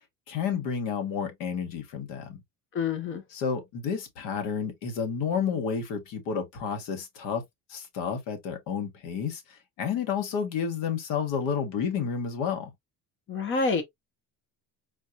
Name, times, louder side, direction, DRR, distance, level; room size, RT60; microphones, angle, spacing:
voice 1, 0.3-2.4 3.3-7.4 7.7-12.7, left 6 dB, 75° left, 1.6 m, -30 dB
voice 2, 2.7-3.2 13.3-13.8, left 4 dB, 35° left, 1.1 m, -27 dB
4.3 x 3.0 x 2.5 m
cardioid pair, 155°, 34 cm